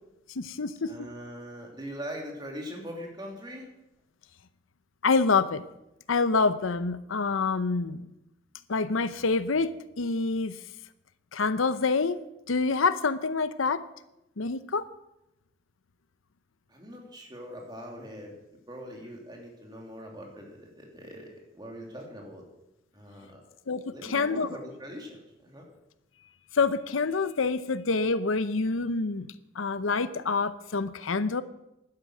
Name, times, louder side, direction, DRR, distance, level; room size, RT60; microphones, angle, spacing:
voice 1, 0.4-0.9 5.0-5.6 6.1-8.1 8.7-9.7 10.0-10.6 11.3-12.2 12.5-13.8 14.4-14.9 23.7-24.5 26.5-29.3 29.6-31.4, left 4 dB, 85° left, 14 dB, 0.7 m, -26 dB
voice 2, 0.9-3.7 16.7-18.3 18.7-22.4 22.9-23.4 23.9-25.6, equal, 20° right, 0 dB, 3.0 m, -42 dB
11.5 x 10.5 x 7.7 m, 0.89 s
head